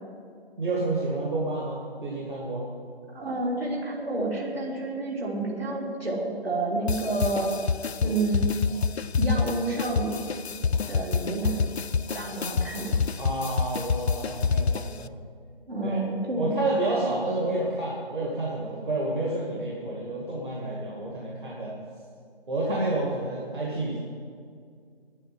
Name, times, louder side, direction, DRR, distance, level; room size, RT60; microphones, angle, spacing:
voice 1, 0.6-2.7 13.2-15.1 15.8-16.0 16.4-21.8 22.5-24.0, right 2 dB, 50° right, -4 dB, 2.2 m, -29 dB
voice 2, 3.1-7.5 8.0-8.5 9.2-10.2 10.9-11.7 12.1-13.0 15.7-16.5, right 2 dB, 70° right, -2 dB, 3.3 m, -29 dB
sound 1, 6.9-15.1, left 5 dB, 80° left, 0.5 m, -28 dB
9.7 x 9.0 x 9.4 m, 2.2 s
figure-of-eight pair, 160°, 31 cm